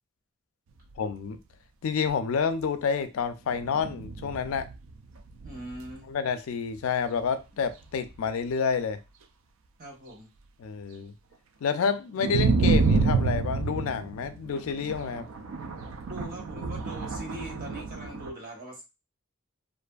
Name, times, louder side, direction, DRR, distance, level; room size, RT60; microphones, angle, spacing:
voice 1, 1.0-1.4 1.8-4.7 6.1-9.0 10.6-11.1 11.6-15.3, left 6 dB, 85° left, 0.4 m, -29 dB
sound 1, 1.1-1.2 1.4-1.5 2.1-2.2 3.5-6.0 7.2-7.3 7.6-8.3 12.2-18.3, right 4 dB, 75° right, 0.4 m, -29 dB
voice 2, 5.4-6.1 9.8-10.3 16.1-19.0, right 1 dB, 45° right, 1.0 m, -41 dB
2.5 x 2.5 x 2.3 m
head